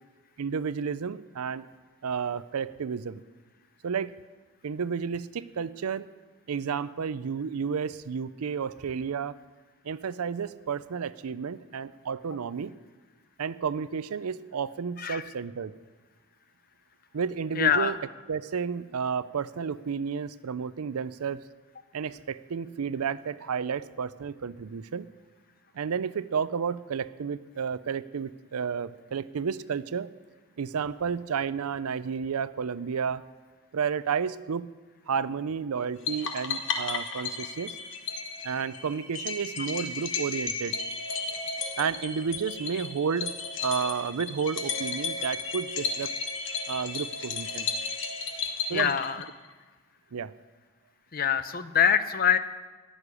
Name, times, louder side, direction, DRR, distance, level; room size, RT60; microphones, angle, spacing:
voice 1, 0.4-1.7 2.0-3.2 3.8-4.2 4.6-6.1 6.5-9.3 9.8-12.7 13.4-15.7 17.1-18.0 18.3-21.4 21.9-25.1 25.7-30.1 30.6-33.2 33.7-34.7 35.1-37.8 38.4-40.8 41.3-41.4 41.8-43.3 43.6-46.1 46.7-47.7 48.7-49.0 50.1-50.3, right 6 dB, 90° right, 16 dB, 0.5 m, -31 dB
voice 2, 17.6-17.9 48.7-49.2 51.1-52.4, left 8 dB, 40° left, 12 dB, 0.6 m, -24 dB
sound 1, 36.1-49.5, left 4 dB, 55° left, 1.2 m, -34 dB
14.0 x 6.5 x 9.8 m, 1.3 s
head